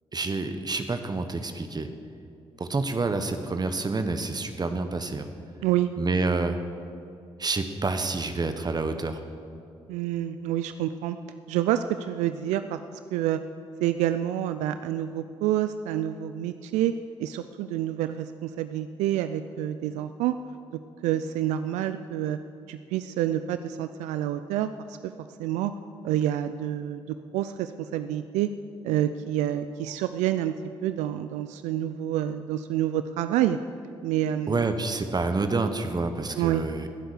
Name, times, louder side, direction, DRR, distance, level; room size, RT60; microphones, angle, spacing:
voice 1, 0.1-1.9 2.6-5.3 6.0-6.6 7.4-9.2 34.5-36.9, right 3 dB, 35° right, 8 dB, 1.2 m, -28 dB
voice 2, 9.9-11.2 11.5-12.8 13.1-13.4 13.8-16.9 17.2-20.3 21.0-22.4 22.7-25.0 25.4-25.7 26.0-28.5 28.8-30.6 30.8-33.6 34.0-34.6 36.4-36.6, right 12 dB, 80° right, 11 dB, 0.4 m, -28 dB
18.0 x 7.8 x 6.7 m, 2.6 s
hypercardioid pair, 45°, 12 cm